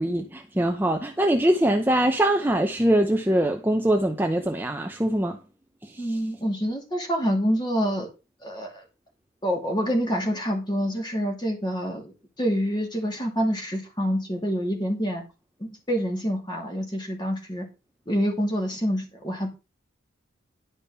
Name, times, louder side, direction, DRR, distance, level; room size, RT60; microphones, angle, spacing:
voice 1, 0.0-5.4 5.8-6.2, right 1 dB, 10° right, 0.7 m, -23 dB
voice 2, 6.0-8.1 8.4-8.8 9.4-15.2 15.6-17.7 18.1-19.5, equal, 20° left, 2.7 m, -27 dB
11.0 x 5.1 x 5.6 m
head